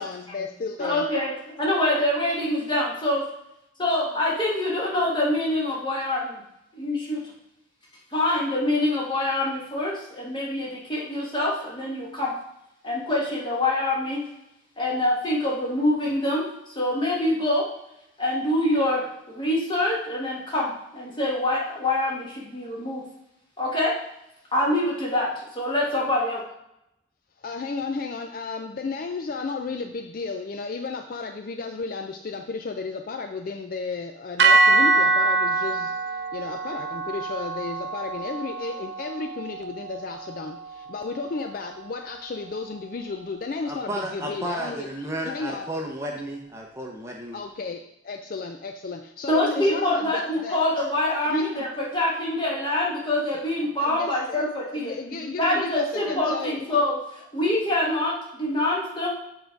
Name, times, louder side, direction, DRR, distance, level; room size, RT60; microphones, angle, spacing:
voice 1, 0.0-1.1 27.4-44.9 45.2-45.7 47.3-50.6 51.2-51.4 53.8-54.5 54.7-56.7, left 4 dB, 45° left, 5 dB, 0.4 m, -33 dB
voice 2, 0.8-1.3 1.6-3.2 3.8-6.4 6.7-7.2 8.1-12.4 12.8-14.2 14.8-17.7 18.2-23.0 23.6-23.9 24.5-26.4 49.3-59.1, left 1 dB, 25° left, -4 dB, 1.6 m, -25 dB
sound 1, 34.4-42.7, right 3 dB, 60° right, 0.5 m, -25 dB
voice 3, 43.7-47.4, right 1 dB, 15° right, 0 dB, 0.7 m, -33 dB
7.2 x 3.9 x 4.5 m, 0.82 s
head